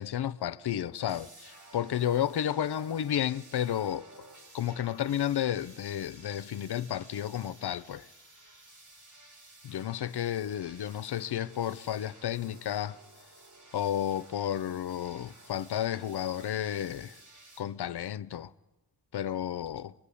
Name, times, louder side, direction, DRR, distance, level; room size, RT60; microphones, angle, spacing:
voice 1, 0.0-4.1 4.5-8.1 9.6-13.0 13.7-17.2 17.6-18.5 19.1-19.9, left 10 dB, 80° left, 0.8 m, -32 dB
sound 1, 1.0-17.6, right 1 dB, 50° right, 7.1 m, -54 dB
26.5 x 22.0 x 8.5 m
wide cardioid pair, 110°, 39 cm